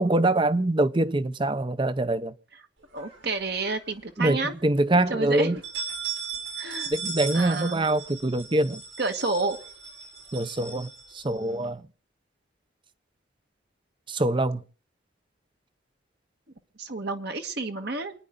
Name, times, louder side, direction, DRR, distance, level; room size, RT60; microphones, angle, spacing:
voice 1, 0.0-2.3 4.2-5.6 6.9-8.8 10.3-10.9 11.1-11.8 14.1-14.6, right 2 dB, 25° right, 0.6 m, -24 dB
voice 2, 2.9-4.5 5.1-5.6 6.6-6.9 7.3-7.9 9.0-9.6 16.8-18.1, right 3 dB, 55° right, 1.4 m, -30 dB
sound 1, 3.0-3.9 4.3-4.4 4.8-4.9 5.4-11.6, right 5 dB, 85° right, 6.8 m, -37 dB
28.5 x 9.9 x 3.8 m
head